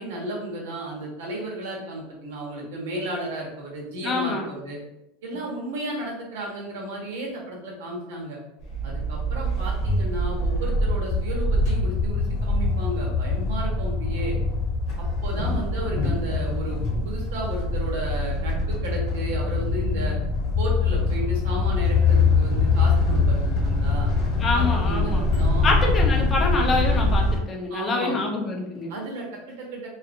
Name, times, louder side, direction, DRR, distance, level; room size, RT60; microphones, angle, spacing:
voice 1, 0.0-4.8 5.2-8.4 8.8-14.3 15.0-20.2 20.6-24.1 24.5-25.7 26.4-26.5 27.7-28.2 28.9-29.9, right 1 dB, 85° right, -2 dB, 1.0 m, -33 dB
voice 2, 4.0-4.5 24.4-25.2 25.6-28.9, left 3 dB, 20° left, 0 dB, 0.5 m, -26 dB
sound 1, 8.6-27.4, left 3 dB, 45° left, 0.9 m, -23 dB
2.7 x 2.5 x 2.5 m, 0.88 s
supercardioid pair, 155°, 0 cm